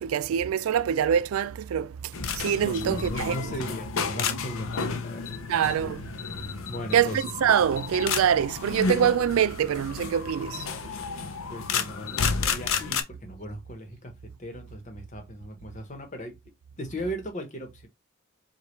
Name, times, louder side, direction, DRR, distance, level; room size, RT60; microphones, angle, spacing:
voice 1, 0.0-1.9 2.4-3.3 5.5-6.0 6.9-7.1 7.4-10.6, right 8 dB, 85° right, 0.3 m, -24 dB
sound 1, 2.1-13.0, left 5 dB, 75° left, 0.6 m, -31 dB
voice 2, 2.6-5.4 6.3-7.3 11.0-14.1 14.4-16.3 16.8-17.9, equal, 35° left, 1.0 m, -38 dB
5.0 x 2.4 x 3.1 m
head